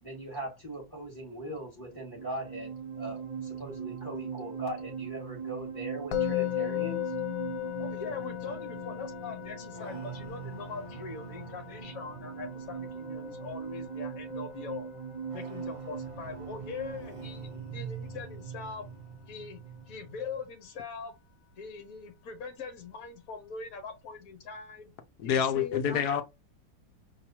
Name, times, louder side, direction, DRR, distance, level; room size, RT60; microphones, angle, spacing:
voice 1, 0.0-7.1, right 1 dB, 10° left, 1.9 m, -40 dB
sound 1, 1.9-20.4, right 6 dB, 45° right, 0.4 m, -41 dB
Musical instrument, 6.1-17.2, left 17 dB, 85° left, 1.3 m, -38 dB
voice 2, 7.8-14.9 15.3-18.9 19.3-19.6 19.9-21.1 21.6-24.9 25.2-26.0, left 5 dB, 50° left, 1.5 m, -42 dB
voice 3, 25.2-26.2, left 8 dB, 70° left, 1.0 m, -27 dB
4.9 x 3.0 x 2.8 m
omnidirectional pair, 2.0 m